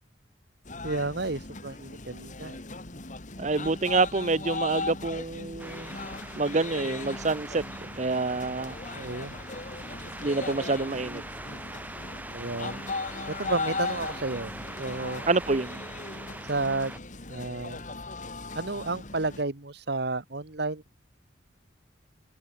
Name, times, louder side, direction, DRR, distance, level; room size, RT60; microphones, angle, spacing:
sound 1, 0.7-19.4, left 3 dB, 40° left, 2.2 m, -38 dB
voice 1, 0.8-2.6 8.9-9.4 12.3-12.9 13.3-15.2 16.4-16.9 17.3-17.8 18.5-20.8, right 3 dB, 55° right, 1.5 m, -32 dB
voice 2, 3.4-5.9 6.3-7.6 8.0-8.8 10.2-11.2 15.3-15.8, right 3 dB, 35° right, 0.8 m, -27 dB
sound 2, 5.6-17.0, right 2 dB, 10° right, 1.2 m, -42 dB
head